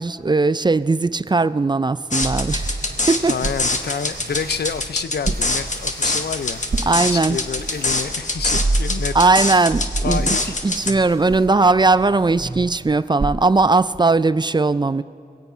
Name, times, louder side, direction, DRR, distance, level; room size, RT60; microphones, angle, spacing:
voice 1, 0.0-2.8 3.1-3.4 6.9-7.4 9.1-10.4 10.6-15.0, right 3 dB, 25° right, 0.3 m, -18 dB
sound 1, 2.1-10.9, left 2 dB, 50° left, 1.2 m, -24 dB
sound 2, 2.2-12.9, right 2 dB, 85° right, 1.2 m, -30 dB
voice 2, 3.3-6.6 7.1-9.1 10.0-10.5, left 6 dB, 80° left, 0.5 m, -28 dB
sound 3, 12.9-14.3, right 3 dB, 55° right, 0.7 m, -34 dB
23.5 x 9.0 x 5.5 m
wide cardioid pair, 65°, 16 cm